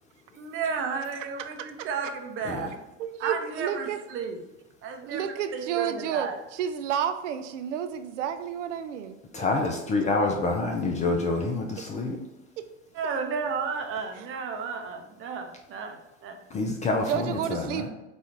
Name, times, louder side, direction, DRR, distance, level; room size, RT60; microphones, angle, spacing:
voice 1, 0.3-2.7 3.2-4.4 4.8-6.4 9.4-9.5 10.0-10.1 12.9-16.4, right 5 dB, 35° right, 4 dB, 0.7 m, -33 dB
voice 2, 3.0-4.0 5.0-9.2 12.6-12.7 14.2-14.3 17.0-17.9, right 9 dB, 70° right, 10 dB, 0.6 m, -31 dB
voice 3, 9.3-12.2 16.5-17.9, left 3 dB, 20° left, 1 dB, 0.4 m, -27 dB
4.2 x 2.3 x 4.5 m, 0.96 s
hypercardioid pair, 95°, 38 cm